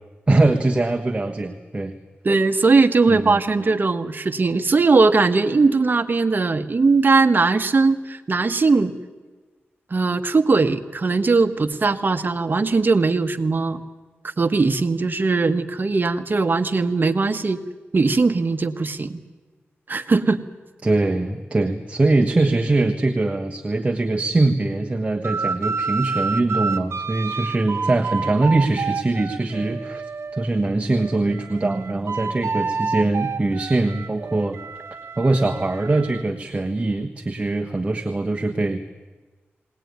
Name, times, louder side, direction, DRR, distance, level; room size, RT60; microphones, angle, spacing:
voice 1, 0.3-1.9 3.1-3.4 20.8-30.1 30.3-34.6 35.2-38.8, right 2 dB, 30° right, 5 dB, 1.3 m, -22 dB
voice 2, 2.2-8.9 9.9-13.8 14.4-17.6 17.9-19.2 19.9-20.4, right 3 dB, 45° right, 9 dB, 1.3 m, -19 dB
sound 1, 25.2-30.5 30.9-36.2, right 4 dB, 75° right, 1.2 m, -29 dB
20.5 x 18.5 x 9.5 m, 1.3 s
cardioid pair, 65°, 4 cm